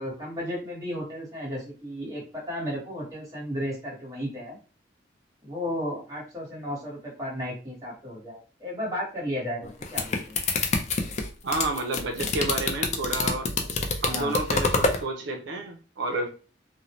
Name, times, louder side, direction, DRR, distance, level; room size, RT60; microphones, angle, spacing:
voice 1, 0.0-4.6 5.4-10.4 14.1-14.3, equal, 20° right, -4 dB, 1.2 m, -34 dB
sound 1, 9.6-15.0, left 3 dB, 40° left, 0.4 m, -27 dB
voice 2, 11.4-13.5 14.0-16.3, right 2 dB, 70° right, 2 dB, 0.4 m, -30 dB
2.6 x 2.0 x 2.9 m, 0.35 s
head